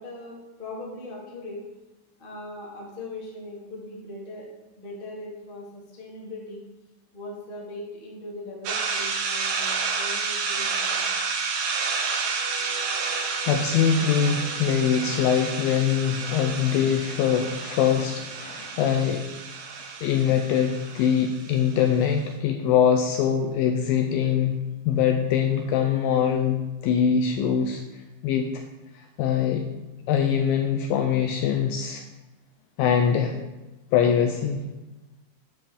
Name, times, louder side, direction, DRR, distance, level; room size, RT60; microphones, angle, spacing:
voice 1, 0.0-1.7 2.2-4.5 4.8-6.6 7.1-11.1, left 1 dB, 30° left, -4 dB, 0.9 m, -39 dB
sound 1, 8.6-22.0, right 5 dB, 90° right, 1.5 m, -30 dB
Wind instrument woodwind instrument, 12.4-17.1, right 3 dB, 70° right, 1.7 m, -45 dB
voice 2, 13.5-19.4 19.8-24.6 24.9-27.8 28.2-28.6 28.9-29.7 30.1-32.0 32.8-33.4 33.9-34.6, left 8 dB, 80° left, 4 dB, 2.1 m, -23 dB
9.4 x 3.7 x 6.9 m, 1.1 s
omnidirectional pair, 4.6 m